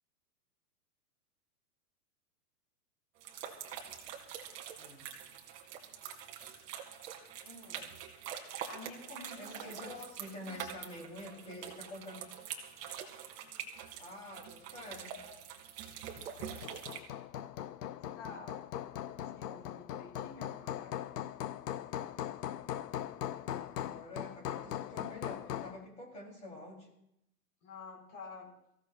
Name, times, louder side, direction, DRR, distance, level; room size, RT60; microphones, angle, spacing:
sound 1, 3.2-17.0, right 8 dB, 40° right, 2.4 m, -45 dB
voice 1, 4.7-5.1 9.4-12.2 14.0-15.2 23.8-26.9, left 1 dB, 15° left, -1 dB, 3.5 m, -48 dB
voice 2, 7.4-7.9 8.7-10.1 10.4-10.6 18.1-18.6 19.3-21.0 27.6-28.5, left 3 dB, 30° left, -2 dB, 5.4 m, -49 dB
Hammer, 16.2-25.8, left 11 dB, 80° left, 0.9 m, -40 dB
25.5 x 15.5 x 2.5 m, 0.79 s
supercardioid pair, 170°, 47 cm